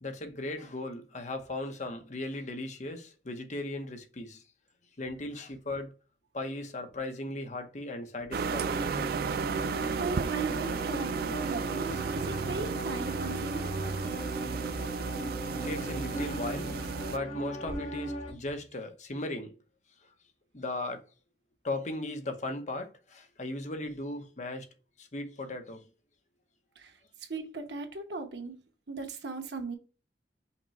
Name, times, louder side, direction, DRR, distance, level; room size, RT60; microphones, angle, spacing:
voice 1, 0.0-4.4 5.0-5.9 6.3-8.9 14.6-14.8 15.5-16.7 17.1-19.5 20.5-21.0 21.6-24.7 25.0-25.9, left 2 dB, 40° left, 0.9 m, -37 dB
sound 1, 8.3-17.2, right 5 dB, 55° right, 0.3 m, -34 dB
sound 2, 8.6-18.3, right 2 dB, 85° left, 2.2 m, -37 dB
voice 2, 10.0-13.7 26.8-29.8, right 3 dB, 75° right, 1.1 m, -38 dB
5.8 x 2.3 x 4.1 m
head